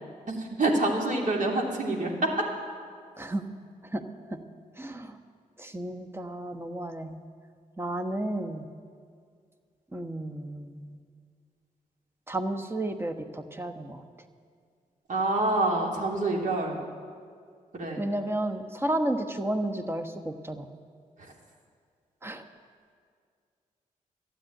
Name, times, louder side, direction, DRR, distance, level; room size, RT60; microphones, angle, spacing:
voice 1, 0.3-2.4 15.1-16.8 17.7-18.0, right 2 dB, 60° right, 0 dB, 2.9 m, -27 dB
voice 2, 4.8-5.2 5.6-7.2 7.8-8.7 9.9-11.0 12.3-14.0 18.0-20.7 22.2-22.4, right 1 dB, 15° right, 5 dB, 1.2 m, -32 dB
12.5 x 9.1 x 9.0 m, 2.1 s
cardioid pair, 55°, 15 cm